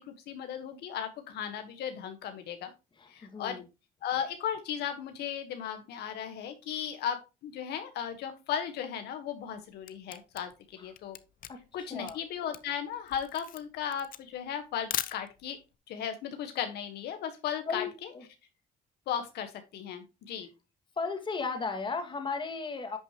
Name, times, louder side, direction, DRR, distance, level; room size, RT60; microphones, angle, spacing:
voice 1, 0.3-2.7 3.1-3.6 4.0-10.5 10.8-11.2 11.7-15.6 15.9-17.8 19.1-20.5, left 8 dB, 75° left, 1.4 m, -36 dB
voice 2, 3.0-3.7 10.8-10.9 11.5-12.2 17.7-18.2 21.0-23.0, left 4 dB, 30° left, 2.0 m, -35 dB
Camera, 9.4-15.7, left 11 dB, 55° left, 0.7 m, -40 dB
10.5 x 6.2 x 3.0 m
cardioid pair, 110°, 17 cm